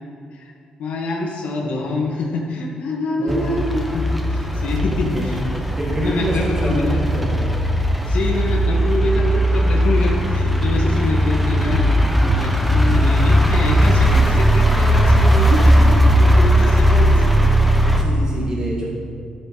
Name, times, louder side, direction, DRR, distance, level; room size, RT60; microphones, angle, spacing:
voice 1, 0.8-5.4 5.9-7.0 8.1-17.2, left 3 dB, 75° left, -1 dB, 1.6 m, -26 dB
voice 2, 1.6-2.0 3.2-3.5 4.9-5.4 5.8-7.3 18.0-18.9, equal, 30° right, -4 dB, 1.9 m, -26 dB
sound 1, 3.3-18.0, equal, 5° right, 1.0 m, -17 dB
12.5 x 6.8 x 4.1 m, 2.3 s
cardioid pair, 95°, 2 cm